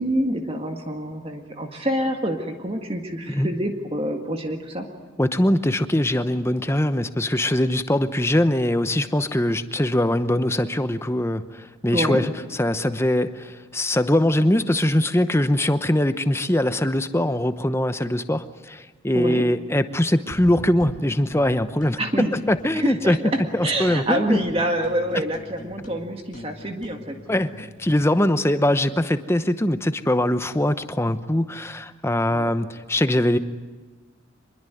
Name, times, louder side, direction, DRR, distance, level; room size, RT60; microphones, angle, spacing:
voice 1, 0.0-4.9 11.9-12.2 19.1-19.4 22.0-22.3 22.7-23.2 23.6-27.2 32.3-32.5, right 1 dB, 30° right, 4 dB, 1.9 m, -26 dB
voice 2, 5.2-22.0 22.3-23.2 23.5-24.4 27.3-33.4, left 1 dB, 15° left, 11 dB, 0.9 m, -22 dB
sound 1, 20.3-22.0 22.3-24.1 24.3-28.1, equal, 40° left, 1.6 m, -42 dB
25.0 x 22.0 x 9.3 m, 1.3 s
head